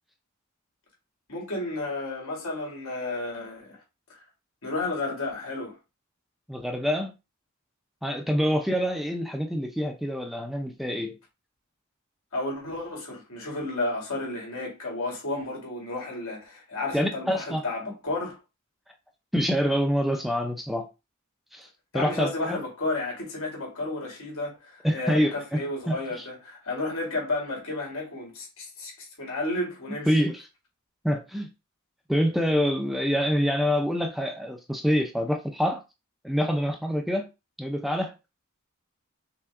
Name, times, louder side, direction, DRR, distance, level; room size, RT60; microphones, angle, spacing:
voice 1, 1.3-3.8 4.6-5.8 12.3-18.4 21.9-30.2, left 2 dB, 80° left, 2.5 m, -32 dB
voice 2, 6.5-7.1 8.0-11.2 16.9-17.6 19.3-20.9 21.5-21.7 21.9-22.6 24.8-26.0 30.1-30.4 31.0-31.5 32.1-35.8 36.2-37.3 37.6-38.1, equal, ahead, 0.5 m, -26 dB
5.7 x 2.2 x 3.7 m
head